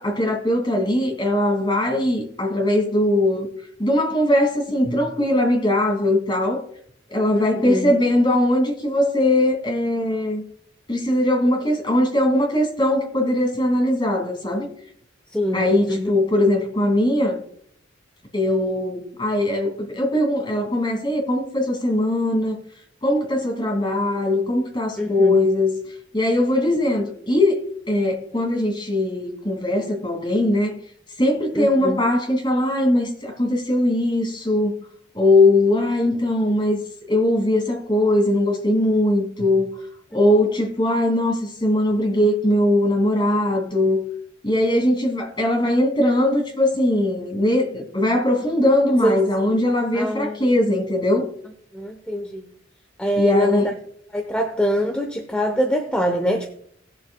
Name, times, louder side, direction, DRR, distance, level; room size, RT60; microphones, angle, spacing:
voice 1, 0.0-3.5 3.8-6.6 7.1-10.4 10.9-14.7 15.5-17.4 18.3-22.6 23.0-25.8 26.1-27.6 27.9-30.8 31.2-34.8 35.1-36.8 37.1-39.7 40.1-44.0 44.4-51.3 53.2-53.7, left 1 dB, 25° left, 2.5 m, -20 dB
voice 2, 7.3-7.9 15.3-16.1 25.0-25.4 31.5-32.0 49.0-49.2 49.9-50.5 51.7-52.4 53.0-53.7 54.1-56.5, equal, 5° left, 0.8 m, -23 dB
18.5 x 7.3 x 2.3 m
head